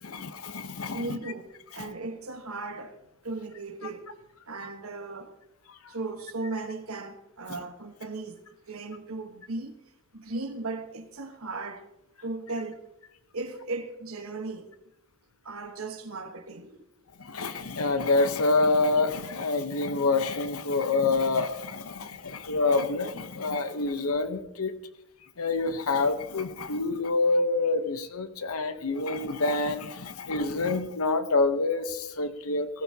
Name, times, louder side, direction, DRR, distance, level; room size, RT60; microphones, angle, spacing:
voice 1, 0.0-1.2 1.8-1.9 5.7-5.8 17.2-24.7 25.4-32.8, left 3 dB, 75° left, 0.9 m, -27 dB
voice 2, 0.9-2.9 3.2-4.1 4.5-5.4 5.9-9.8 10.1-11.9 12.2-12.8 13.3-14.7 15.4-16.9, right 3 dB, 70° right, 1.3 m, -37 dB
16.5 x 14.5 x 2.9 m
head